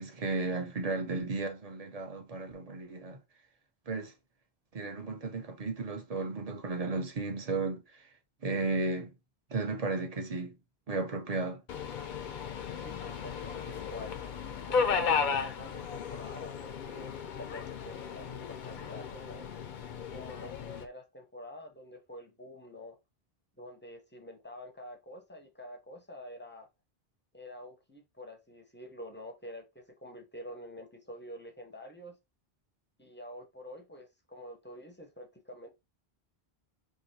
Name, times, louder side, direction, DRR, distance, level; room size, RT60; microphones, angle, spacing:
voice 1, 0.0-3.2 3.9-4.1 4.7-8.0 8.4-9.1 9.5-10.6 10.9-11.6, right 3 dB, 40° right, 0.7 m, -34 dB
Subway metro underground, 11.7-20.8, left 6 dB, 60° left, 0.6 m, -35 dB
voice 2, 12.8-14.2 14.6-19.4 20.1-23.0 23.6-26.7 27.3-32.1 33.0-35.7, left 1 dB, 15° left, 0.6 m, -47 dB
4.5 x 2.6 x 2.7 m
omnidirectional pair, 1.0 m